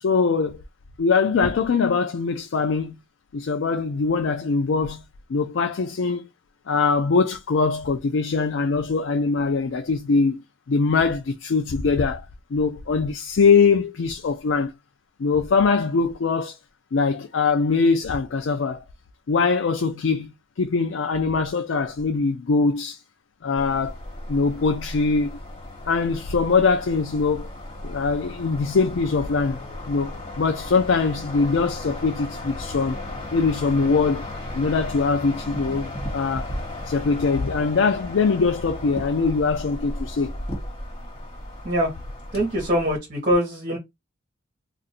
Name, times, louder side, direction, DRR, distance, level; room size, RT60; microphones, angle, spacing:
voice 1, 0.0-0.6 1.0-3.0 3.3-5.0 5.3-6.3 6.7-10.4 10.7-12.3 12.5-14.7 15.2-16.6 16.9-18.8 19.3-23.0 23.4-24.0 24.3-25.3 25.9-27.5 27.8-33.0 33.3-34.2 34.5-36.5 36.8-40.3, left 4 dB, 70° left, 0.4 m, -22 dB
sound 1, 23.6-43.0, left 1 dB, 30° left, 1.7 m, -35 dB
voice 2, 42.3-43.8, equal, 45° right, 1.2 m, -23 dB
2.5 x 2.5 x 4.1 m
head